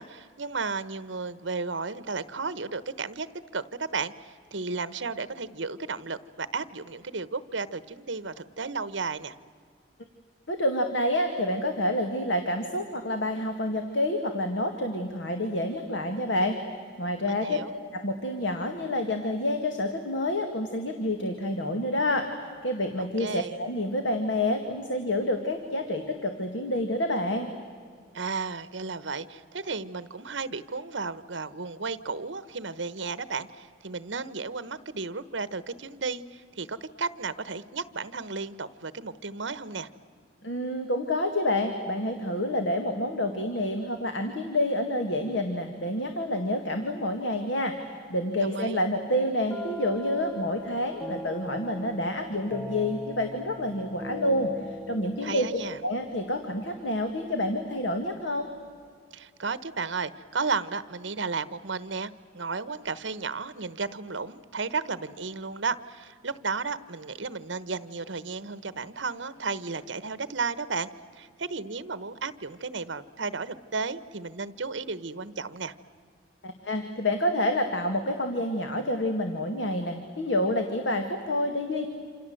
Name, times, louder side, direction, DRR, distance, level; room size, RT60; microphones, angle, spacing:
voice 1, 0.0-9.3 17.2-17.7 23.0-23.5 28.1-39.9 48.4-48.8 55.2-55.8 59.1-75.7, right 4 dB, 75° right, 15 dB, 1.1 m, -34 dB
voice 2, 10.5-16.6 17.0-17.6 17.9-22.3 22.6-27.5 40.4-47.8 48.1-54.5 54.9-55.5 55.8-58.5 76.4-81.9, left 1 dB, 75° left, 5 dB, 2.0 m, -28 dB
sound 1, 49.5-57.2, left 1 dB, 10° left, 1.0 m, -41 dB
28.0 x 27.0 x 7.8 m, 2.1 s
head